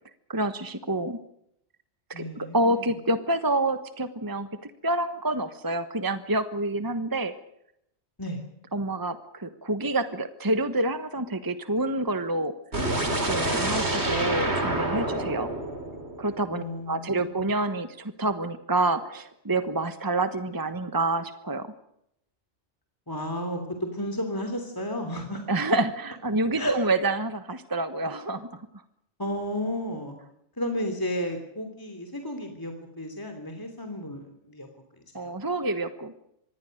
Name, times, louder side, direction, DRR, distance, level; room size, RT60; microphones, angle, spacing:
voice 1, 0.3-1.2 2.1-7.3 8.7-12.5 13.2-15.5 16.2-21.7 25.5-28.5 35.1-36.1, right 2 dB, 20° right, 10 dB, 1.3 m, -28 dB
voice 2, 2.1-2.9 8.2-8.4 16.5-17.4 23.1-25.4 26.6-26.8 29.2-30.2 30.6-34.7 35.1-35.3, equal, 15° left, 4 dB, 3.1 m, -33 dB
sound 1, 12.7-16.7, right 1 dB, 65° right, 4.1 m, -28 dB
25.5 x 20.5 x 6.6 m, 0.77 s
omnidirectional pair, 1.2 m